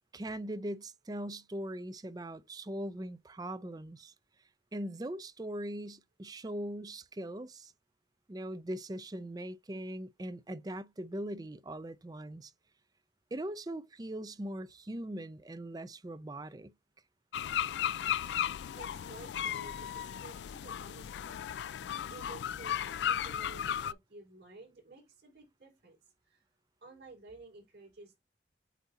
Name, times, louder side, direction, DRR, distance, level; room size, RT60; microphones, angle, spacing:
voice 1, 0.1-4.1 4.7-7.7 8.3-12.5 13.3-16.7, right 1 dB, 20° right, 0.5 m, -40 dB
sound 1, 17.3-23.9, left 10 dB, 80° left, 0.3 m, -35 dB
voice 2, 18.8-21.4 21.9-26.4 26.8-28.2, right 3 dB, 65° right, 4.3 m, -53 dB
8.3 x 2.8 x 4.0 m
head